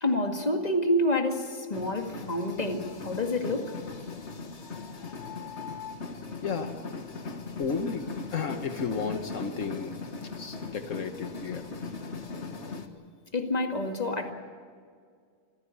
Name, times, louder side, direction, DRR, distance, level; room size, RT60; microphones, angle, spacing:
voice 1, 0.0-3.7 7.2-7.3 13.3-14.3, left 1 dB, 30° left, 3 dB, 2.2 m, -28 dB
sound 1, 1.7-12.9, left 4 dB, 60° left, 1.9 m, -39 dB
voice 2, 6.4-6.7 7.6-9.9 10.4-11.6, left 5 dB, 75° left, 6 dB, 1.5 m, -33 dB
26.5 x 16.0 x 8.5 m, 2.1 s
omnidirectional pair, 1.4 m